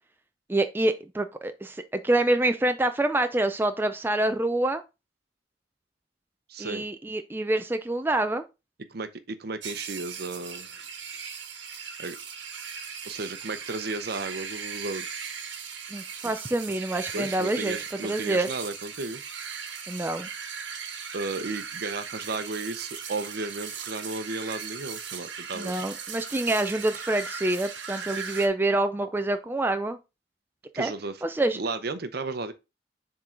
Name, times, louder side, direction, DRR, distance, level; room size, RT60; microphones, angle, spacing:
voice 1, 0.5-4.8 6.6-8.4 15.9-17.7 18.0-18.5 19.9-20.3 25.5-30.0 30.8-30.9 31.2-31.6, right 2 dB, 10° right, 0.4 m, -26 dB
voice 2, 6.5-6.9 8.9-10.7 12.0-12.2 13.0-15.1 16.2-16.3 17.1-19.2 21.1-25.9 30.7-31.2 31.5-32.5, right 3 dB, 60° right, 0.7 m, -34 dB
sound 1, 9.6-28.5, right 6 dB, 80° right, 1.2 m, -38 dB
7.3 x 3.8 x 3.7 m
head